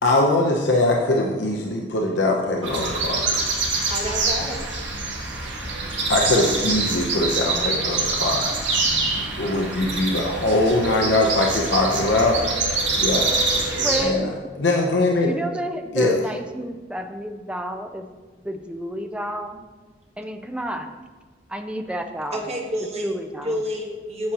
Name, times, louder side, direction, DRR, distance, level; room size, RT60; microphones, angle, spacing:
voice 1, 0.0-3.3 6.1-8.6 9.1-12.4 13.0-13.3 14.0-14.3 14.6-15.3 15.9-16.2, left 2 dB, 75° left, -1 dB, 0.8 m, -21 dB
sound 1, 2.6-14.0, right 3 dB, 80° right, 1.5 m, -25 dB
voice 2, 3.9-4.7 22.3-23.1 23.4-24.3, equal, 35° right, -1 dB, 1.3 m, -28 dB
voice 3, 13.8-14.3 15.2-18.2 18.4-19.6 20.2-21.0 21.5-22.4 23.0-23.6, equal, 5° right, 6 dB, 0.4 m, -30 dB
8.7 x 7.4 x 2.9 m, 1.3 s
head